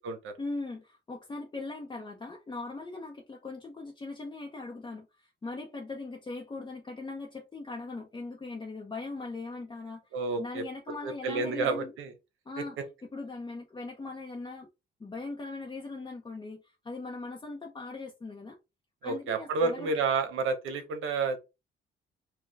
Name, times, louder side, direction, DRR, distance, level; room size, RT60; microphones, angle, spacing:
voice 1, 0.4-12.0 12.5-12.8 13.1-14.7 15.0-18.6 19.0-20.0, left 3 dB, 25° left, 0.7 m, -40 dB
voice 2, 10.1-10.6 11.0-12.1 19.0-21.4, right 4 dB, 85° right, 0.9 m, -30 dB
4.6 x 2.2 x 3.3 m
cardioid pair, 90°, 20 cm